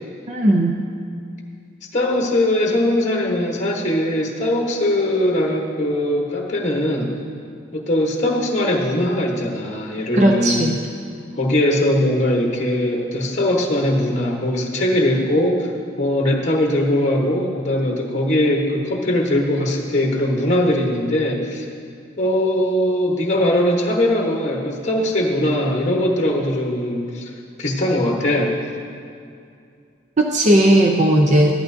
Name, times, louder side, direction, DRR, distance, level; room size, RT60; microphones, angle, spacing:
voice 1, 0.3-0.8 10.1-10.8 30.2-31.5, right 1 dB, 35° right, 2 dB, 0.5 m, -16 dB
voice 2, 1.9-7.1 7.7-10.7 11.4-15.7 16.0-21.7 22.2-27.3 27.6-28.5, left 1 dB, 35° left, -1 dB, 1.1 m, -20 dB
14.0 x 11.5 x 2.6 m, 2.4 s
head